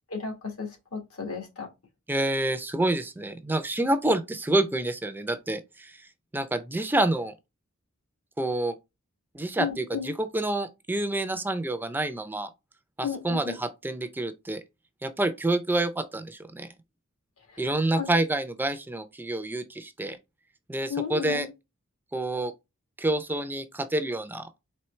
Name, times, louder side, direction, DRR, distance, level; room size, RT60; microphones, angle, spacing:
voice 1, 0.1-1.7 9.6-10.1 13.0-13.6 17.5-18.1 20.9-21.5, left 6 dB, 85° left, 1.6 m, -34 dB
voice 2, 2.1-6.1 6.3-7.3 8.4-8.7 9.3-12.5 13.0-14.6 15.0-16.7 17.6-20.2 20.7-21.5 22.1-22.5 23.0-24.5, right 1 dB, 10° right, 0.4 m, -28 dB
4.4 x 3.0 x 3.1 m
head